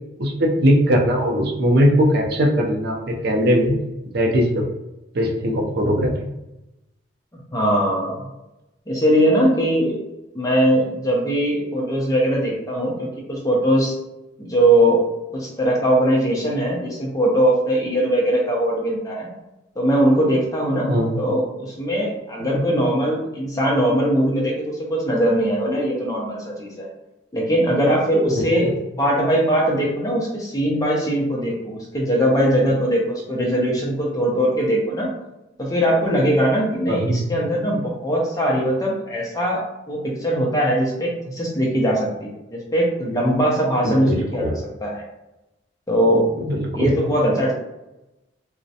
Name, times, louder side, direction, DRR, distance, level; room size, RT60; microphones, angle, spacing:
voice 1, 0.2-3.8 4.1-4.6 5.1-6.3 20.9-21.1 22.6-22.7 28.4-28.7 36.9-37.2 43.8-44.5 46.5-46.9, equal, 50° right, 0 dB, 0.4 m, -20 dB
voice 2, 7.5-8.3 8.9-10.0 10.3-14.0 14.4-15.0 15.3-19.3 19.8-20.9 21.2-26.9 27.3-35.1 35.6-44.5 44.8-45.0 45.9-46.3 46.7-47.5, equal, 15° left, -3 dB, 0.4 m, -20 dB
2.4 x 2.0 x 2.7 m, 0.95 s
head